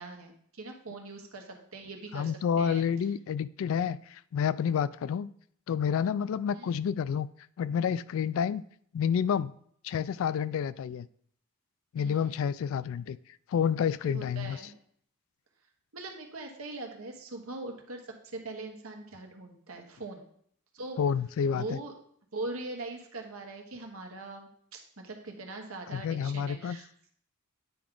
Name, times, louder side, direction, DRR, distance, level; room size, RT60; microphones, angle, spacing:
voice 1, 0.0-2.9 6.5-6.7 11.9-12.5 14.0-14.7 15.9-18.0 18.3-20.3 20.7-21.0 21.5-21.9 22.3-26.9, right 2 dB, 75° right, 3 dB, 1.3 m, -41 dB
voice 2, 2.1-5.3 5.7-7.3 7.6-8.6 8.9-9.5 9.8-11.1 11.9-13.2 13.5-14.6 21.0-21.8 25.9-26.8, left 7 dB, 65° left, 18 dB, 0.3 m, -29 dB
9.3 x 4.7 x 3.8 m, 0.64 s
head